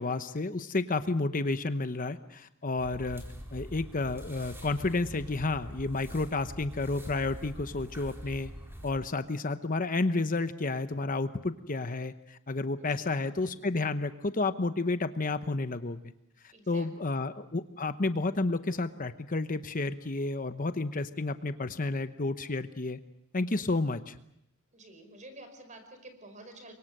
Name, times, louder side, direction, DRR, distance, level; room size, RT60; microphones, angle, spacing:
voice 1, 0.0-3.2 3.5-8.5 8.8-16.0 16.7-23.0 23.3-24.1, left 3 dB, 40° left, 10 dB, 0.9 m, -31 dB
sound 1, 2.8-8.9, equal, 10° right, 4.4 m, -44 dB
voice 2, 12.8-13.2 16.5-17.2 24.7-26.7, right 2 dB, 35° right, 8 dB, 5.0 m, -50 dB
29.0 x 24.0 x 6.7 m, 0.74 s
head